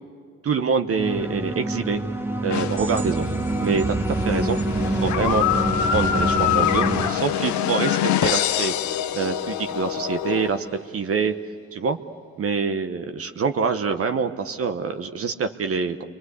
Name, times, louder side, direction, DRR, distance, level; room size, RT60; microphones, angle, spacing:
voice 1, 0.4-2.0 2.4-3.3 3.6-5.6 5.9-8.7 9.1-10.6 10.9-11.3 11.7-12.0 12.4-16.0, right 5 dB, 50° right, 7 dB, 1.1 m, -25 dB
sound 1, 1.0-7.1, right 1 dB, 5° right, 1.3 m, -26 dB
sound 2, 2.5-10.1, left 12 dB, 70° left, 0.6 m, -29 dB
sound 3, 3.2-4.1 4.3-10.5, left 9 dB, 90° left, 1.2 m, -26 dB
28.5 x 23.0 x 8.2 m, 2.1 s
cardioid pair, 90°, 30 cm